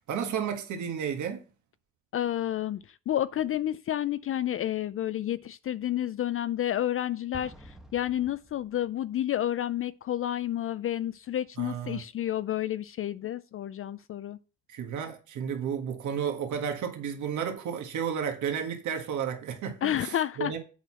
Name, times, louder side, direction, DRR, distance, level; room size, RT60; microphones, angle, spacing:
voice 1, 0.0-1.4 11.6-12.0 14.7-20.6, right 7 dB, 75° right, 1.7 m, -32 dB
voice 2, 2.1-14.4 19.8-20.6, left 11 dB, 45° left, 0.4 m, -30 dB
Explosion, 7.3-9.0, equal, ahead, 1.2 m, -50 dB
7.9 x 4.6 x 6.1 m
cardioid pair, 90°, 30 cm